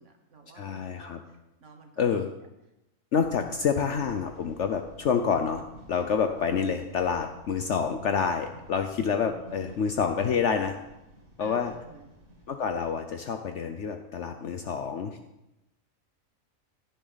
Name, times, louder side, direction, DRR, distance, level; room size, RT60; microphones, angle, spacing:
voice 1, 0.0-2.3 3.4-3.7 9.2-9.8 11.4-12.1, right 2 dB, 60° right, 3 dB, 1.8 m, -50 dB
voice 2, 0.5-1.2 2.0-2.3 3.1-5.6 5.9-10.8 11.4-11.7 12.5-15.2, left 6 dB, 60° left, 6 dB, 1.0 m, -28 dB
sound 1, 3.2-13.0, right 1 dB, 80° right, 3.0 m, -51 dB
16.5 x 10.5 x 4.0 m, 0.94 s
omnidirectional pair, 1.4 m